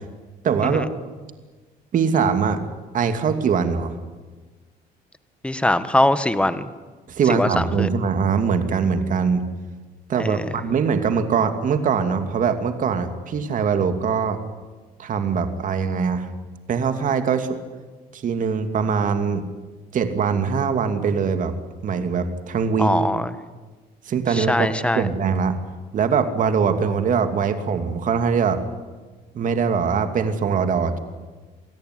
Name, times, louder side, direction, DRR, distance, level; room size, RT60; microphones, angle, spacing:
voice 1, 0.4-0.9 1.9-2.6 2.9-3.9 7.1-9.4 10.1-14.4 15.0-16.3 16.7-17.5 18.1-19.4 19.9-21.5 21.8-22.9 24.1-24.7 25.0-25.6 25.9-28.6 29.3-31.0, right 6 dB, 50° right, 8 dB, 2.6 m, -22 dB
voice 2, 5.4-6.7 7.3-7.9 10.2-10.4 22.8-23.3 24.3-25.1, left 1 dB, 5° left, 12 dB, 1.6 m, -21 dB
27.5 x 18.0 x 9.7 m, 1.3 s
cardioid pair, 110°, 17 cm